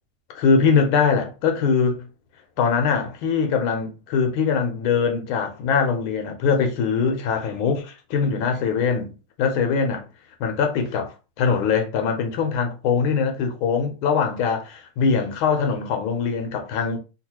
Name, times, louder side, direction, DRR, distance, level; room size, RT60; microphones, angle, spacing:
voice 1, 0.3-2.0 2.6-10.0 10.4-17.0, left 5 dB, 90° left, 1.6 m, -22 dB
3.7 x 2.4 x 2.9 m
omnidirectional pair, 2.2 m